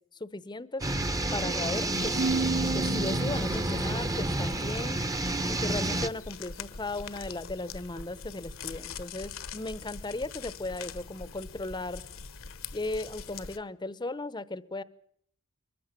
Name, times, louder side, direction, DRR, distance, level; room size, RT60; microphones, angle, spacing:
voice 1, 0.2-0.9 1.3-5.0 5.5-12.0 12.7-14.8, left 2 dB, 20° left, 17 dB, 0.8 m, -36 dB
sound 1, 0.8-6.1, right 1 dB, 15° right, 0.9 m, -29 dB
sound 2, 1.9-13.6, left 5 dB, 70° left, 1.2 m, -43 dB
Keyboard (musical), 2.1-4.0, right 4 dB, 70° right, 1.5 m, -32 dB
23.5 x 15.0 x 9.0 m, 0.68 s
head